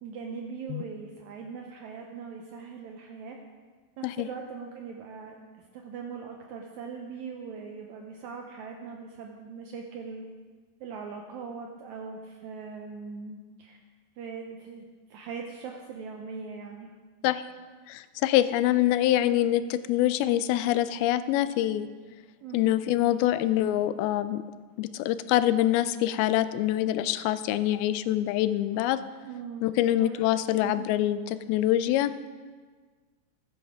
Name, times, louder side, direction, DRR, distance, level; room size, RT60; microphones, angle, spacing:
voice 1, 0.0-3.4 4.0-5.4 5.7-10.2 10.8-13.8 14.2-14.8 15.1-16.9 22.4-22.8 29.2-30.3 30.6-30.9, right 5 dB, 85° right, 1 dB, 1.6 m, -40 dB
voice 2, 17.9-21.9 22.5-24.4 24.8-29.0 29.6-32.3, left 13 dB, 85° left, 13 dB, 2.5 m, -25 dB
14.5 x 11.0 x 3.5 m, 1.5 s
omnidirectional pair, 4.3 m